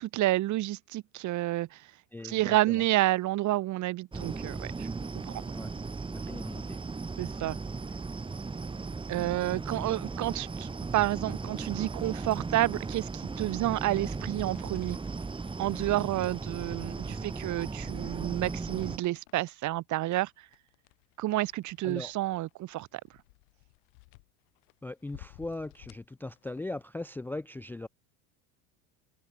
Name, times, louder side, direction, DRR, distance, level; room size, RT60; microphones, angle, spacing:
voice 1, 0.0-1.8 2.2-4.9 5.3-5.4 7.2-7.6 9.1-15.0 15.6-20.3 21.2-22.9, right 16 dB, 50° right, 1.6 m, -30 dB
voice 2, 2.1-2.8 5.5-5.8 6.1-6.8 21.8-22.1 24.8-27.9, left 2 dB, 5° left, 0.5 m, -39 dB
sound 1, 4.1-19.0, right 4 dB, 15° right, 1.7 m, -37 dB
sound 2, 13.3-26.8, left 32 dB, 80° left, 7.0 m, -59 dB
supercardioid pair, 120°, 37 cm